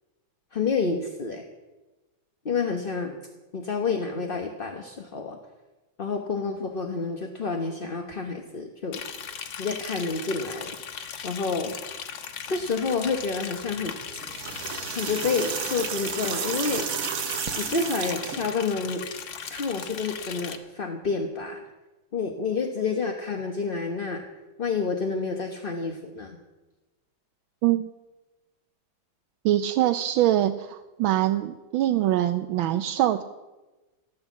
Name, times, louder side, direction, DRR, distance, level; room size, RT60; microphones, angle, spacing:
voice 1, 0.5-1.5 2.4-3.2 3.5-5.4 6.0-9.0 9.6-10.8 11.2-11.8 12.5-14.0 14.9-16.9 17.6-19.1 19.5-21.6 22.1-24.2 24.6-26.4, left 4 dB, 35° left, 3 dB, 1.1 m, -29 dB
Liquid, 8.9-20.6, left 7 dB, 70° left, 1.8 m, -38 dB
sound 1, 14.2-18.5, right 7 dB, 55° right, 1.2 m, -32 dB
voice 2, 29.4-33.2, right 13 dB, 80° right, 8 dB, 1.5 m, -23 dB
14.0 x 13.5 x 7.4 m, 1.1 s
omnidirectional pair, 2.2 m